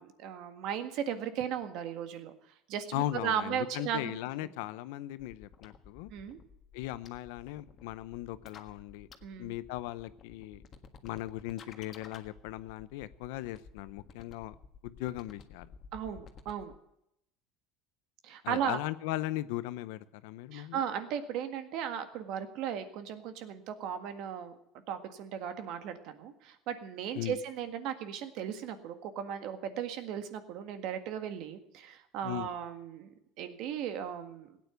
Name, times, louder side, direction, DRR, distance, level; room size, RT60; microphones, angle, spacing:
voice 1, 0.0-2.3 2.7-4.1 6.1-6.4 9.2-9.5 15.9-16.7 18.2-18.8 20.5-24.5 24.9-34.6, right 9 dB, 65° right, 8 dB, 1.7 m, -36 dB
voice 2, 2.9-6.1 6.7-9.1 9.4-10.6 11.0-14.5 14.8-15.7 18.4-20.8 27.1-27.4 32.2-32.5, left 15 dB, 85° left, 15 dB, 0.7 m, -38 dB
sound 1, 5.3-16.8, left 6 dB, 40° left, 1.6 m, -53 dB
16.5 x 9.2 x 8.1 m, 0.79 s
supercardioid pair, 120°, 0 cm